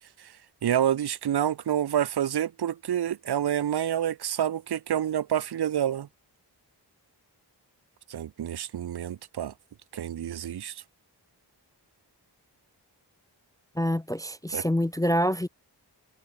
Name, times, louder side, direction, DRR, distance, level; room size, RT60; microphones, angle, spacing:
voice 1, 0.6-6.1 8.1-9.5 9.9-10.8 14.5-14.6, right 10 dB, 65° right, 0.5 m, -28 dB
voice 2, 13.8-15.5, equal, 10° left, 0.3 m, -26 dB
wide cardioid pair, 55°, 42 cm